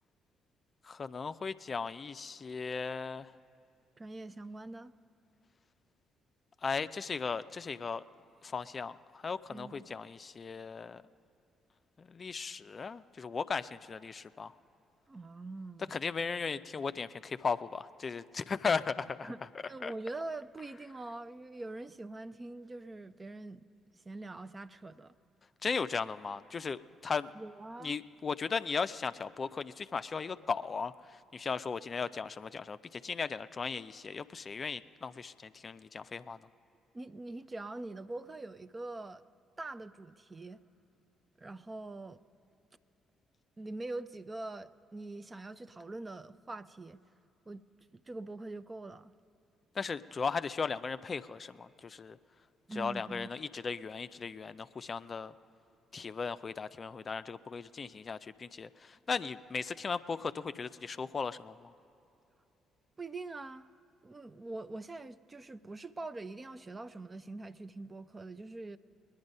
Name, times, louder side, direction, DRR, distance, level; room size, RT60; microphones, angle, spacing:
voice 1, 0.8-3.3 6.6-8.0 8.4-11.0 12.0-14.5 15.9-19.3 19.8-19.9 25.6-27.3 27.8-36.5 49.7-52.2 52.7-55.3 55.9-61.7, left 5 dB, 40° left, 12 dB, 0.4 m, -37 dB
voice 2, 4.0-4.9 9.5-9.9 15.1-15.9 19.2-23.6 23.9-25.1 27.3-28.0 36.9-39.2 39.6-40.6 41.4-42.2 43.6-47.0 47.5-47.6 47.9-49.1 52.7-53.3 63.0-63.7 64.0-68.8, right 2 dB, 30° right, 13 dB, 0.5 m, -43 dB
20.5 x 10.5 x 5.4 m, 2.8 s
hypercardioid pair, 45°, 0 cm